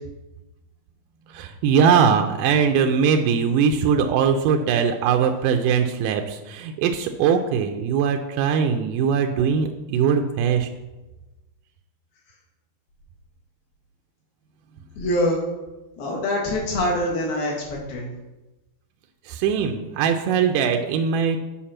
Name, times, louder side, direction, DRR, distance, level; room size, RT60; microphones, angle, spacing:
voice 1, 1.3-10.7 19.3-21.4, right 7 dB, 85° right, 4 dB, 1.9 m, -21 dB
voice 2, 15.0-15.4 16.0-18.0, left 1 dB, 70° left, -2 dB, 3.7 m, -24 dB
8.6 x 5.2 x 5.8 m, 1.1 s
omnidirectional pair, 4.4 m